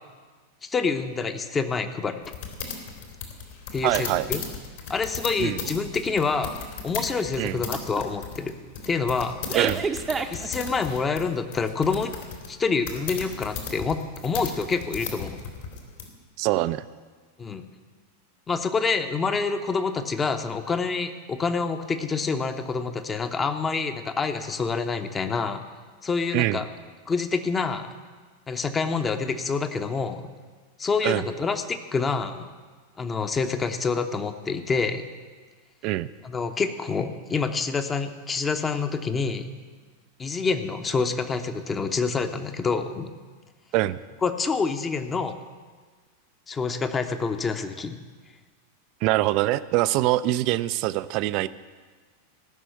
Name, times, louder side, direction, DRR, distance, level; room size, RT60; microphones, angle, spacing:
voice 1, 0.7-2.1 3.7-4.4 4.9-6.6 6.8-8.6 8.9-9.4 10.3-12.1 12.5-15.4 17.4-17.6 18.5-25.6 26.0-26.7 27.1-27.9 28.5-30.3 30.8-32.5 33.0-35.0 36.2-39.5 40.2-43.1 44.2-45.4 46.5-48.0, left 4 dB, 20° left, 8 dB, 0.8 m, -27 dB
sound 1, 2.2-16.1, left 6 dB, 55° left, 2.3 m, -36 dB
voice 2, 3.8-4.3 5.4-5.6 7.4-7.6 9.5-9.8 16.4-16.9 26.3-26.6 31.0-31.2 35.8-36.1 43.7-44.0 49.0-51.5, right 16 dB, 40° right, 16 dB, 0.4 m, -24 dB
sound 2, 7.7-8.0 8.4-8.7 9.5-11.0, right 4 dB, 15° right, 0.7 m, -28 dB
15.5 x 6.3 x 8.0 m, 1.5 s
figure-of-eight pair, 90°, 0 cm